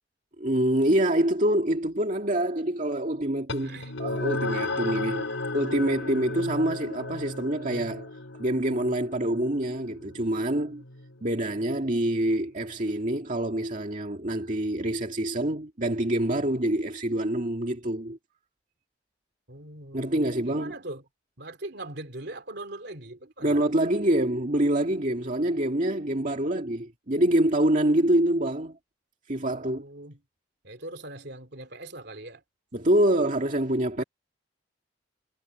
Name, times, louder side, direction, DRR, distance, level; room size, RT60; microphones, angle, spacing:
voice 1, 0.4-5.3 5.5-8.1 8.4-10.8 11.2-18.2 19.9-20.7 23.4-28.8 29.3-29.8 32.7-34.0, right 1 dB, 40° right, 2.2 m, -26 dB
sound 1, 3.5-12.3, left 2 dB, 90° left, 4.1 m, -35 dB
voice 2, 3.6-3.9 19.5-21.0 21.4-23.5 26.3-26.4 29.5-30.2 30.6-32.4 34.0-34.1, right 2 dB, 60° right, 3.1 m, -41 dB
head